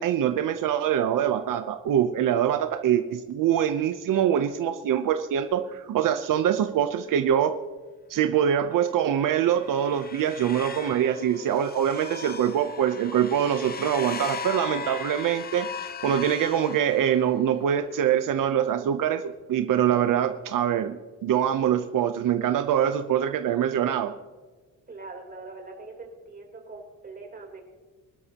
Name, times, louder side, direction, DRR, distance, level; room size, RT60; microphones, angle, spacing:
voice 1, 0.0-7.5 8.1-15.7 16.0-19.2 19.5-24.1, right 9 dB, 80° right, 8 dB, 0.8 m, -24 dB
sound 1, 9.2-17.5, left 6 dB, 30° left, 0.7 m, -38 dB
voice 2, 24.9-27.6, right 3 dB, 30° right, 1 dB, 3.6 m, -42 dB
24.5 x 12.5 x 2.9 m, 1.3 s
cardioid pair, 140°, 32 cm